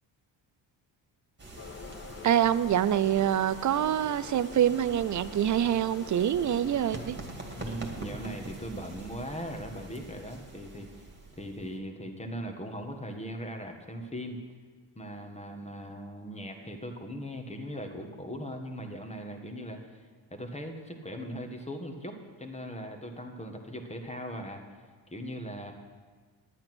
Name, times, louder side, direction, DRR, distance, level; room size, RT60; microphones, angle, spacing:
sound 1, 1.4-11.7, right 2 dB, 25° right, 2.1 m, -44 dB
sound 2, 1.6-7.1, left 8 dB, 30° left, 0.4 m, -47 dB
voice 1, 2.2-7.2, right 10 dB, 40° right, 16 dB, 0.5 m, -25 dB
voice 2, 7.5-11.1 11.4-14.4 14.9-24.6 25.1-25.7, equal, 15° left, 3 dB, 1.5 m, -39 dB
10.5 x 8.7 x 6.1 m, 1.5 s
cardioid pair, 85°, 47 cm